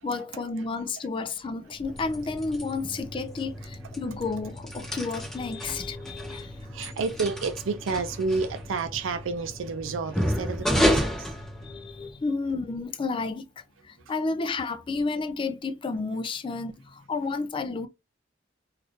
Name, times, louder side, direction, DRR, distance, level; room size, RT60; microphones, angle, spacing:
voice 1, 0.0-6.6 11.6-17.9, left 3 dB, 25° left, 0.3 m, -31 dB
sound 1, 1.7-12.2, equal, 5° left, 0.8 m, -31 dB
voice 2, 6.2-11.3, right 4 dB, 90° right, 0.4 m, -31 dB
2.6 x 2.4 x 3.4 m
head